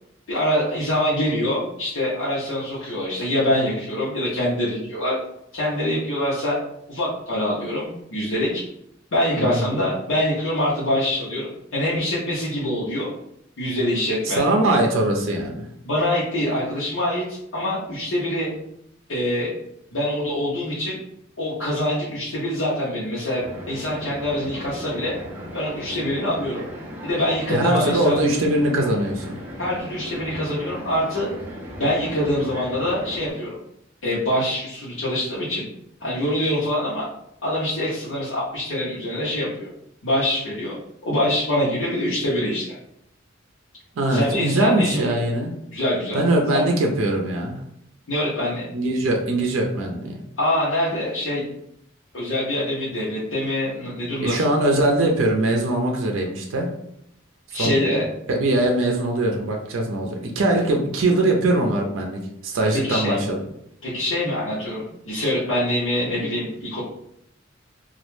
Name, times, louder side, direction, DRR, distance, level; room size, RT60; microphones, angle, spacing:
voice 1, 0.3-5.2 5.5-6.6 6.9-8.6 9.1-13.1 13.6-14.4 15.8-18.5 19.1-19.5 19.9-21.0 21.4-25.2 25.5-26.6 27.0-28.2 29.6-31.3 31.8-33.6 34.0-35.7 36.0-37.0 37.4-39.7 40.0-42.8 44.1-45.0 45.7-46.2 46.5-46.6 48.1-48.7 50.4-51.5 52.1-54.4 57.5-58.1 62.7-63.2 63.8-66.8, left 1 dB, 75° left, -9 dB, 0.7 m, -24 dB
voice 2, 9.4-9.8 14.3-15.7 27.5-29.4 44.0-45.5 46.1-47.6 48.7-50.2 54.2-56.7 57.5-57.8 58.3-63.4, right 1 dB, 90° right, 1 dB, 0.5 m, -21 dB
sound 1, 23.4-33.3, equal, 10° right, 0.5 m, -37 dB
2.3 x 2.1 x 3.0 m, 0.75 s
head